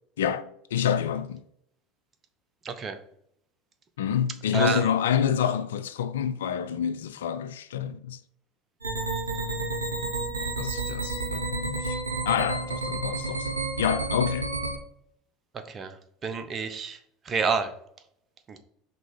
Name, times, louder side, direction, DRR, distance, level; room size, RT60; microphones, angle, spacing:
voice 1, 0.2-1.4 4.0-8.2 10.3-12.0 12.3-14.5, left 8 dB, 80° left, 0.4 m, -28 dB
voice 2, 2.6-3.0 4.5-4.8 15.5-16.0 16.2-17.0 17.2-17.7 18.5-18.6, right 5 dB, 35° right, 1.0 m, -28 dB
sound 1, 8.8-14.8, right 3 dB, 90° right, 1.5 m, -30 dB
5.4 x 3.8 x 5.2 m
hypercardioid pair, 75°, 0 cm